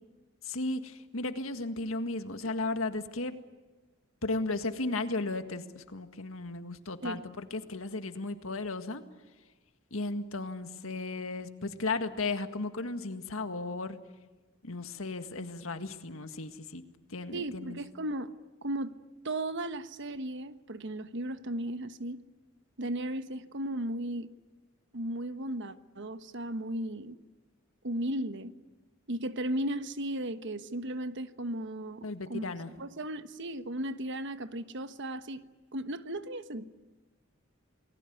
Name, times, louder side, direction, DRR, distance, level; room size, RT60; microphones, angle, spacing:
voice 1, 0.4-3.3 4.2-9.0 9.9-14.0 14.6-16.8 17.1-17.8 32.0-32.7, left 2 dB, 75° left, 1.9 m, -35 dB
voice 2, 17.3-18.3 18.6-19.0 19.2-22.2 22.8-24.3 24.9-27.2 27.8-28.5 29.1-32.4 32.8-35.4 35.7-36.6, right 1 dB, 60° right, 1.3 m, -35 dB
29.0 x 20.0 x 9.5 m
head